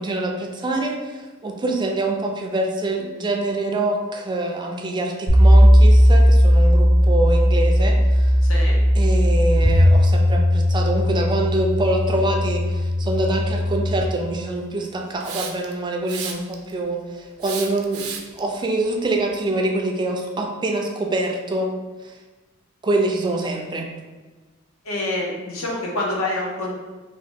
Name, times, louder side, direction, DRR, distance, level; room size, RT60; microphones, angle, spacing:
voice 1, 0.0-8.3 8.9-21.8 22.0-22.1 22.8-23.9, right 2 dB, 20° right, 1 dB, 0.4 m, -25 dB
sound 1, 5.3-14.0, equal, 90° left, 1.1 m, -16 dB
Hiss, 15.2-15.7 16.1-16.7 17.4-18.4, right 7 dB, 90° right, 0.4 m, -32 dB
voice 2, 24.8-26.7, left 2 dB, 70° left, -3 dB, 0.8 m, -26 dB
2.8 x 2.6 x 3.4 m, 1.3 s
head